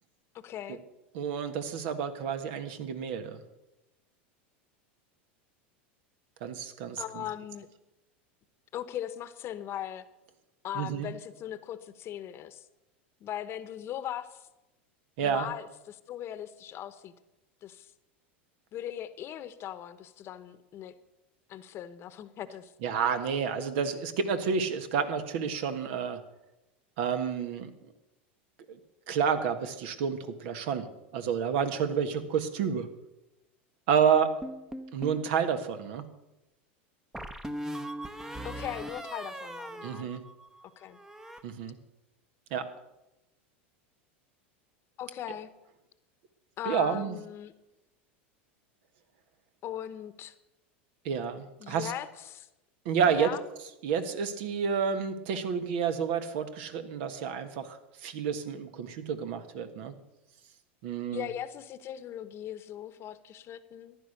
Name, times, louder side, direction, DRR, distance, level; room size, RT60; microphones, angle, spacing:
voice 1, 0.3-0.8 7.0-7.7 8.7-10.0 10.6-12.7 13.2-14.5 15.2-17.1 17.6-17.9 18.7-20.9 21.5-22.7 38.4-40.1 40.6-41.0 45.0-45.5 46.6-47.5 49.6-50.3 51.6-52.5 53.0-53.4 61.1-64.0, left 11 dB, 40° left, 13 dB, 1.0 m, -39 dB
voice 2, 1.1-3.4 6.4-7.0 10.7-11.1 15.2-15.5 22.8-26.2 27.0-27.7 28.7-28.8 29.1-30.9 31.1-32.9 33.9-34.4 34.9-36.0 39.8-40.2 41.4-41.7 42.5-42.7 46.6-47.2 51.0-51.9 52.8-53.3 53.8-59.9 60.8-61.3, right 7 dB, 65° right, 9 dB, 1.6 m, -29 dB
sound 1, 34.4-35.3 37.1-40.6 40.9-41.4, right 1 dB, 10° right, 0.9 m, -40 dB
14.5 x 10.5 x 6.6 m, 0.94 s
hypercardioid pair, 105°, 6 cm